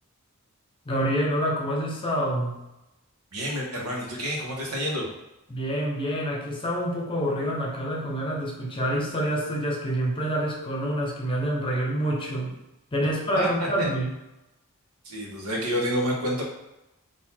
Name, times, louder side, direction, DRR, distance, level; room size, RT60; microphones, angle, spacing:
voice 1, 0.9-2.6 5.5-12.5 12.9-14.1, equal, 25° left, -1 dB, 0.7 m, -27 dB
voice 2, 3.3-5.1 13.3-13.7 15.0-16.4, equal, 80° right, -2 dB, 1.2 m, -28 dB
4.0 x 2.6 x 4.2 m, 0.95 s
head